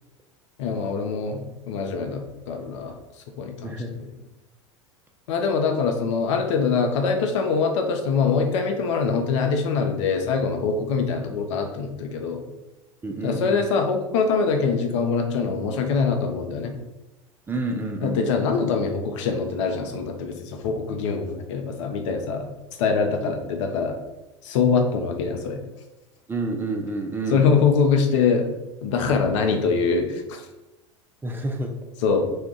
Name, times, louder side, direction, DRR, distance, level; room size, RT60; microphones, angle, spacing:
voice 1, 0.6-2.9 3.4-4.1 5.3-12.4 13.2-16.7 18.0-22.5 22.8-24.0 24.4-25.6 27.3-28.5 28.8-30.5 32.0-32.3, left 5 dB, 65° left, 4 dB, 0.5 m, -23 dB
voice 2, 13.0-13.6 17.5-18.2 23.2-23.3 26.3-27.6 31.2-31.7, right 2 dB, 15° right, 3 dB, 0.3 m, -29 dB
2.3 x 2.1 x 3.7 m, 0.99 s
hypercardioid pair, 80°, 17 cm